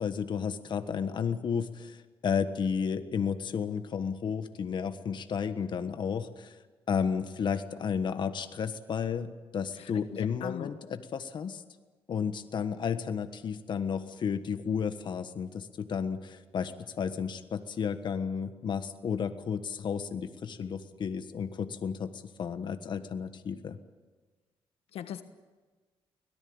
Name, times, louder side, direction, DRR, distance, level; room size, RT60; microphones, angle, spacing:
voice 1, 0.0-6.6 6.9-11.6 12.1-16.7 17.0-23.8, left 6 dB, 50° left, 9 dB, 1.4 m, -32 dB
voice 2, 9.8-10.7 24.9-25.2, left 10 dB, 85° left, 10 dB, 1.3 m, -40 dB
24.0 x 18.0 x 8.8 m, 1.3 s
cardioid pair, 125°, 10 cm